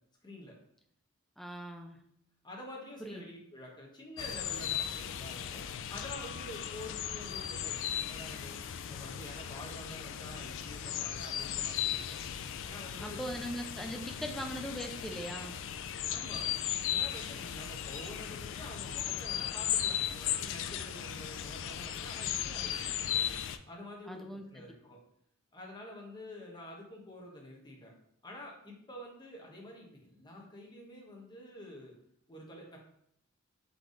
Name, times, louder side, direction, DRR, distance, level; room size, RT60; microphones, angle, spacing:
voice 1, 0.2-0.6 2.4-12.2 12.6-13.2 16.1-16.5 16.9-23.4 23.7-25.0 25.5-27.9 28.2-32.0 32.3-32.8, left 1 dB, 20° left, -1 dB, 1.0 m, -48 dB
voice 2, 1.4-2.0 3.0-3.2 13.0-15.6 24.1-24.4, equal, ahead, 3 dB, 0.5 m, -40 dB
sound 1, 4.2-23.6, left 9 dB, 60° left, 0.3 m, -37 dB
4.0 x 3.4 x 3.8 m, 0.70 s
head